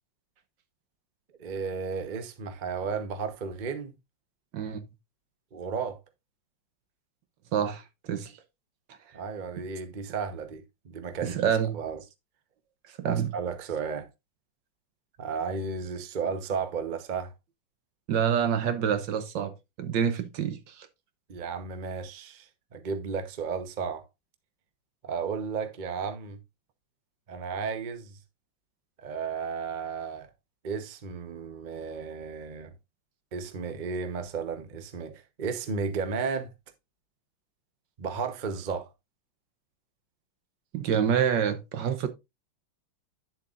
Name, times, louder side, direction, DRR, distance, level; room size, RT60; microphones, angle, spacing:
voice 1, 1.4-3.9 5.5-6.0 9.1-11.4 11.7-12.0 13.0-14.1 15.2-17.3 21.3-24.0 25.0-26.4 27.3-28.2 29.0-30.3 30.6-32.7 33.3-36.5 38.0-38.9, right 5 dB, 35° right, 0.8 m, -33 dB
voice 2, 4.5-4.8 7.5-8.3 11.2-11.8 13.0-13.3 18.1-19.5 19.8-20.9 40.7-42.1, right 8 dB, 70° right, 1.5 m, -27 dB
9.7 x 7.4 x 2.5 m
omnidirectional pair, 2.1 m